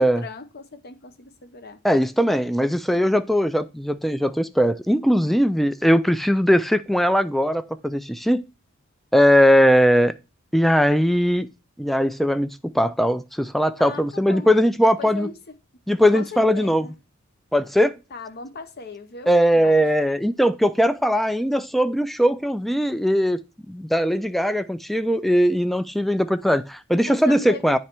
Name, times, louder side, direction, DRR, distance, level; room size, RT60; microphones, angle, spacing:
voice 1, 0.0-1.8 13.8-14.5 14.8-15.5 16.1-17.0 18.1-19.8 26.9-27.8, left 4 dB, 50° left, 0.8 m, -38 dB
voice 2, 1.8-8.4 9.1-10.1 10.5-11.5 11.8-12.5 12.7-15.3 15.9-16.9 17.5-17.9 19.3-23.4 23.7-27.8, equal, ahead, 0.3 m, -19 dB
9.6 x 3.2 x 4.4 m
head